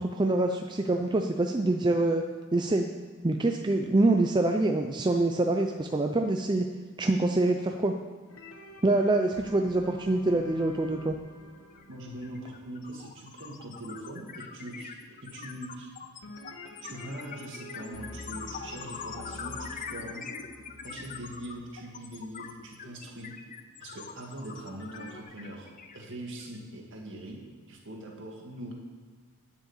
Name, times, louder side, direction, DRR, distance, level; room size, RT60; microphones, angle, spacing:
voice 1, 0.0-2.2 2.5-2.9 3.2-6.7 7.0-7.9 8.8-11.2, right 2 dB, 20° right, 4 dB, 0.4 m, -25 dB
sound 1, 8.3-13.6 16.2-22.2 24.8-25.2, left 1 dB, 60° left, 1.3 m, -47 dB
sound 2, 11.8-11.9 12.2-26.6, left 6 dB, 35° left, 0.7 m, -43 dB
voice 2, 11.9-15.9 16.8-20.3 20.8-23.3 23.8-27.4 27.7-28.7, right 1 dB, 55° right, 0 dB, 2.1 m, -42 dB
9.9 x 7.6 x 7.2 m, 1.5 s
head